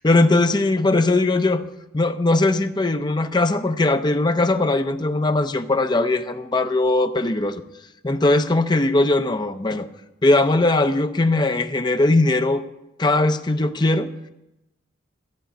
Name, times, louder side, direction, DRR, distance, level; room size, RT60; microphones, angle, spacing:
voice 1, 0.0-1.7 1.9-7.6 8.0-9.9 10.2-12.6 13.0-14.1, left 2 dB, 25° left, 9 dB, 0.6 m, -19 dB
14.0 x 5.2 x 9.0 m, 0.92 s
head